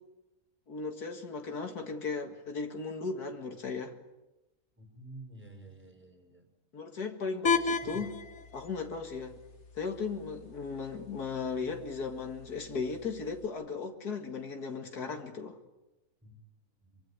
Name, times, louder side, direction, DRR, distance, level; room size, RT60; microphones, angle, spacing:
voice 1, 0.7-4.0 6.7-8.2 8.5-9.4 9.7-15.6, left 4 dB, 85° left, 4 dB, 2.5 m, -36 dB
voice 2, 4.8-6.4 7.9-8.0 16.2-16.4 16.8-17.0, right 2 dB, 5° right, 4 dB, 4.5 m, -50 dB
sound 1, 7.4-13.4, left 5 dB, 50° left, 1.9 m, -36 dB
24.5 x 24.5 x 9.8 m, 0.99 s
omnidirectional pair, 1.6 m